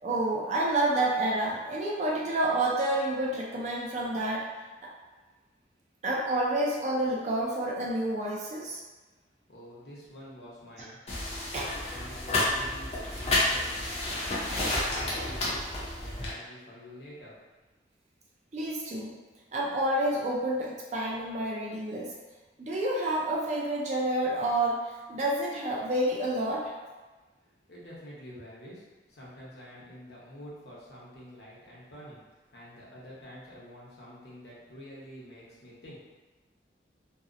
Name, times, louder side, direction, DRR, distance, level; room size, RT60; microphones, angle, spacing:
voice 1, 0.0-4.5 4.8-4.9 6.0-8.8 11.5-11.7 18.5-19.2 19.5-22.1 22.6-26.7, right 1 dB, 40° right, -3 dB, 0.4 m, -29 dB
voice 2, 9.5-11.0 11.9-13.8 14.1-14.5 14.8-17.4 27.7-36.0, equal, 65° left, -6 dB, 0.8 m, -47 dB
sound 1, 11.1-16.3, left 1 dB, 35° left, 0.5 m, -30 dB
2.7 x 2.0 x 2.5 m, 1.3 s
head